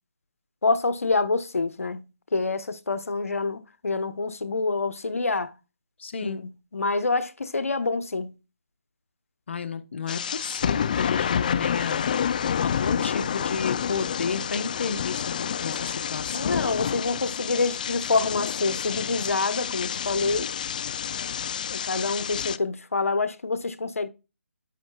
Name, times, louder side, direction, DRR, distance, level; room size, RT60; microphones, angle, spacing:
voice 1, 0.6-2.1 2.3-5.5 6.2-8.3 16.3-20.5 21.7-24.1, left 3 dB, 80° left, 1.1 m, -27 dB
voice 2, 6.0-6.5 9.5-12.0 12.6-16.7, left 5 dB, 55° left, 1.2 m, -32 dB
sound 1, 10.1-22.6, left 8 dB, 35° left, 0.4 m, -29 dB
10.5 x 7.2 x 2.4 m
figure-of-eight pair, 160°, 8 cm